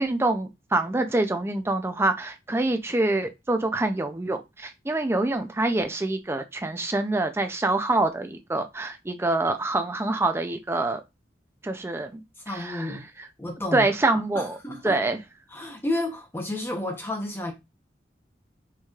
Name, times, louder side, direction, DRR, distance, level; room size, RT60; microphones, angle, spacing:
voice 1, 0.0-11.0 11.6-12.9 13.7-14.6 14.8-15.2, right 2 dB, 15° right, 0.4 m, -26 dB
voice 2, 12.5-13.0 13.4-15.0 15.5-17.5, left 1 dB, 15° left, 0.8 m, -31 dB
4.5 x 3.0 x 2.4 m
head